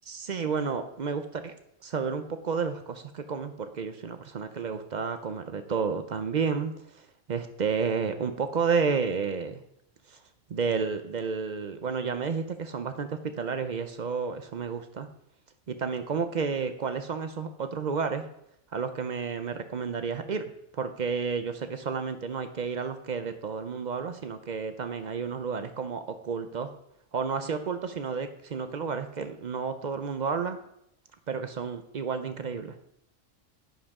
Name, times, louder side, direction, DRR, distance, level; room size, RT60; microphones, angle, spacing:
voice 1, 0.1-1.5 1.8-9.6 10.1-10.2 10.5-15.1 15.7-18.2 18.7-20.4 20.7-26.7 27.1-30.6 31.3-32.8, right 5 dB, 50° right, 9 dB, 0.5 m, -31 dB
10.5 x 5.0 x 3.6 m, 0.75 s
omnidirectional pair, 1.3 m